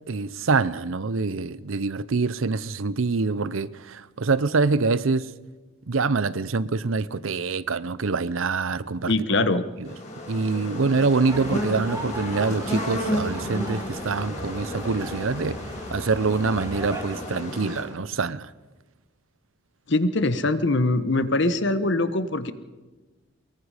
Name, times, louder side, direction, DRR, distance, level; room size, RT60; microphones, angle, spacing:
voice 1, 0.1-5.3 5.9-9.4 9.8-9.9 10.3-15.6 15.9-18.5, right 4 dB, 70° right, 0.7 m, -25 dB
voice 2, 9.1-9.6 19.9-22.5, left 2 dB, 55° left, 1.1 m, -22 dB
sound 1, 9.8-17.8, left 1 dB, 35° left, 4.8 m, -33 dB
sound 2, 11.3-17.0, right 1 dB, 15° right, 4.9 m, -38 dB
23.5 x 22.0 x 5.0 m
head